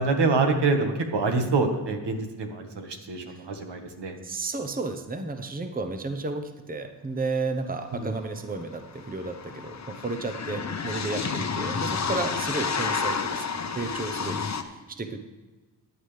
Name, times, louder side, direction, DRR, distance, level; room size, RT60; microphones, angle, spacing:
voice 1, 0.0-4.2 7.9-8.1, right 3 dB, 75° right, 4 dB, 1.7 m, -26 dB
voice 2, 4.2-13.5 13.7-15.2, right 3 dB, 20° right, 7 dB, 0.9 m, -33 dB
sound 1, 8.1-8.2 8.4-14.6, left 5 dB, 40° left, 0.9 m, -30 dB
14.5 x 9.5 x 3.4 m, 1.2 s
cardioid pair, 80°, 42 cm